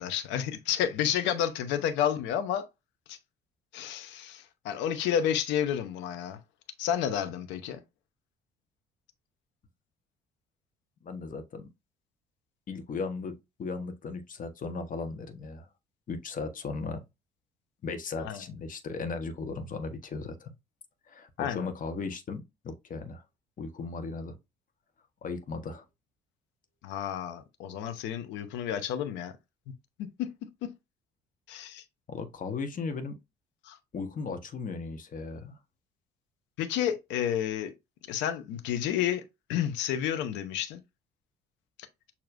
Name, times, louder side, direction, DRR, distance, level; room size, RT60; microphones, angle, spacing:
voice 1, 0.0-2.7 3.1-3.2 3.7-6.4 6.8-7.8 18.2-18.4 21.4-21.7 26.8-29.3 30.2-30.3 30.6-30.7 31.5-31.8 33.6-33.8 36.6-37.7 38.1-39.2 39.5-40.8, left 10 dB, 65° left, 0.9 m, -30 dB
voice 2, 11.0-11.7 12.7-13.3 13.6-15.7 16.1-17.0 17.8-20.5 21.1-23.2 23.6-24.4 25.2-25.8 32.1-33.2 33.9-35.6, left 4 dB, 40° left, 1.2 m, -36 dB
6.6 x 2.9 x 2.6 m
figure-of-eight pair, 50°, 21 cm